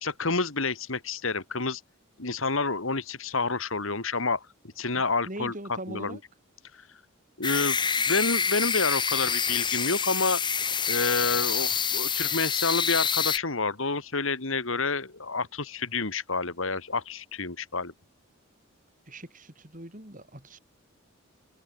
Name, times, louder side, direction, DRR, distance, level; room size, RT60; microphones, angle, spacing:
voice 1, 0.0-1.8 2.2-4.4 4.8-6.2 6.7-6.8 7.4-10.4 10.9-17.9, left 3 dB, 70° left, 2.5 m, -29 dB
voice 2, 4.9-6.2 19.1-20.6, right 1 dB, 40° right, 5.4 m, -41 dB
sound 1, 7.4-13.4, left 6 dB, 20° left, 1.5 m, -27 dB
head